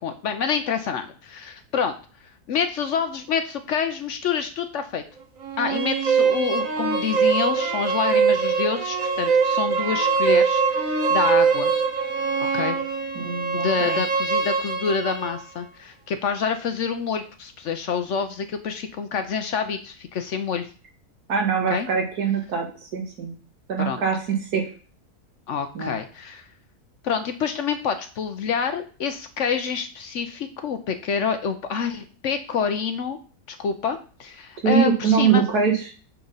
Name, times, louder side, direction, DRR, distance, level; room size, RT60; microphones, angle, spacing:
voice 1, 0.0-2.0 2.5-5.0 5.6-11.7 12.4-12.8 13.5-20.7 21.7-21.9 23.8-24.0 25.5-26.5 27.0-33.2 33.5-35.4, left 6 dB, 60° left, 8 dB, 0.8 m, -27 dB
sound 1, 5.4-15.4, right 5 dB, 60° right, 1.4 m, -22 dB
voice 2, 13.2-14.0 21.3-23.3 23.7-24.6 25.7-26.0 34.6-35.8, right 6 dB, 85° right, 1 dB, 2.0 m, -23 dB
7.0 x 3.8 x 5.4 m, 0.40 s
omnidirectional pair, 1.6 m